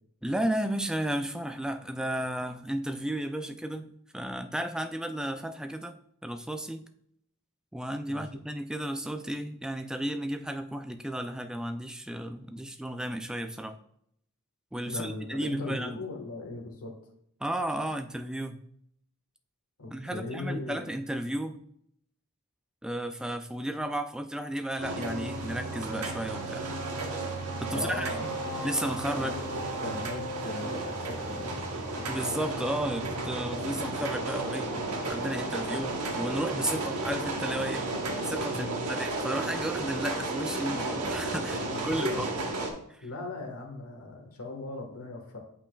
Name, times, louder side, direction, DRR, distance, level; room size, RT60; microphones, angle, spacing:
voice 1, 0.2-6.0 6.2-6.8 7.7-13.8 14.7-16.0 17.4-18.6 19.9-21.6 22.8-26.6 27.6-28.1 28.6-29.3 32.1-34.7 35.1-37.8 38.2-42.3 42.9-43.0, right 1 dB, 5° right, 7 dB, 0.3 m, -33 dB
voice 2, 14.9-16.9 19.8-20.9 27.7-28.3 29.1-31.6 38.5-38.8 41.5-41.9 43.0-45.4, left 2 dB, 75° left, 1 dB, 1.5 m, -38 dB
sound 1, 24.8-42.7, right 2 dB, 85° right, 1.2 m, -33 dB
8.4 x 5.6 x 2.3 m, 0.69 s
head